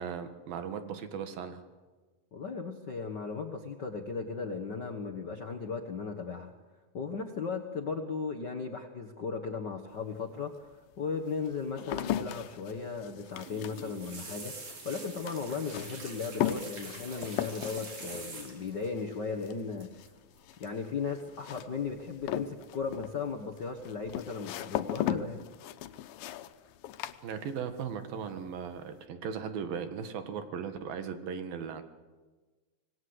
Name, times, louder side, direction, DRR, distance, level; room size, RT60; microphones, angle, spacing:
voice 1, 0.0-1.6 27.2-31.8, right 7 dB, 90° right, 9 dB, 3.4 m, -37 dB
voice 2, 2.3-6.5 6.9-20.0 20.6-25.4, left 5 dB, 60° left, 2 dB, 1.1 m, -36 dB
sound 1, 9.9-10.0 10.7-27.9 28.2-28.8, left 11 dB, 85° left, 2.6 m, -38 dB
sound 2, 13.2-18.8 19.8-20.1 20.4-20.7 21.9-22.4 22.8-23.3 23.8-24.2 24.6-24.7, right 3 dB, 50° right, 5.0 m, -45 dB
26.0 x 19.5 x 8.0 m, 1.3 s
omnidirectional pair, 4.0 m